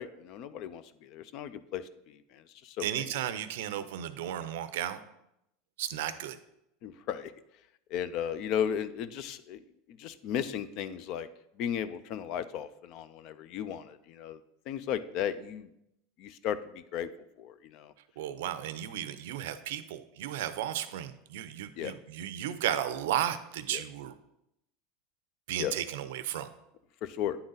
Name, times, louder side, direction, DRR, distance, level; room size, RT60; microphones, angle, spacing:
voice 1, 0.0-2.9 6.8-7.3 7.9-9.6 9.9-11.3 11.6-14.4 14.7-15.7 16.2-17.1 17.4-17.9 21.8-21.9 23.7-23.8 25.6-25.7 27.0-27.4, left 9 dB, 50° left, 14 dB, 0.4 m, -35 dB
voice 2, 2.8-5.0 5.8-6.4 18.2-24.1 25.5-26.5, right 11 dB, 80° right, 13 dB, 0.5 m, -34 dB
9.6 x 3.9 x 3.9 m, 0.81 s
supercardioid pair, 140°, 0 cm